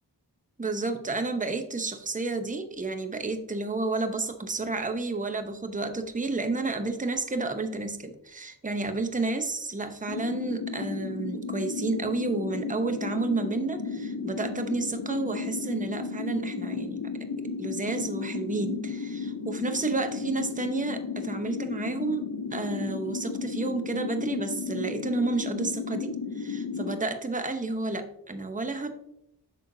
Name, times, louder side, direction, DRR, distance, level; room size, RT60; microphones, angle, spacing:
voice 1, 0.6-17.1 17.6-28.9, right 3 dB, 20° right, 7 dB, 0.7 m, -31 dB
sound 1, 10.1-27.0, left 5 dB, 65° left, 0.8 m, -34 dB
7.9 x 6.3 x 2.7 m, 0.79 s
wide cardioid pair, 60°, 42 cm